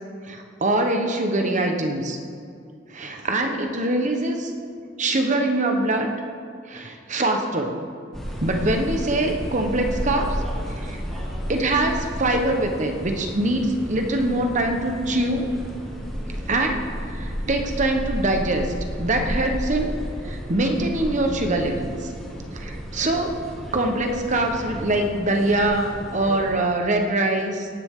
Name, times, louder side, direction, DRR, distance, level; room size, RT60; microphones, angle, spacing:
voice 1, 0.2-2.2 2.9-4.5 5.0-6.1 6.7-7.8 8.4-10.4 10.7-11.0 11.5-15.5 16.5-16.8 17.1-19.9 20.2-22.1 22.5-23.3 23.7-27.7, right 1 dB, 40° right, 4 dB, 1.1 m, -23 dB
sound 1, 8.1-26.5, equal, ahead, 2.2 m, -32 dB
17.5 x 9.8 x 3.7 m, 2.3 s
head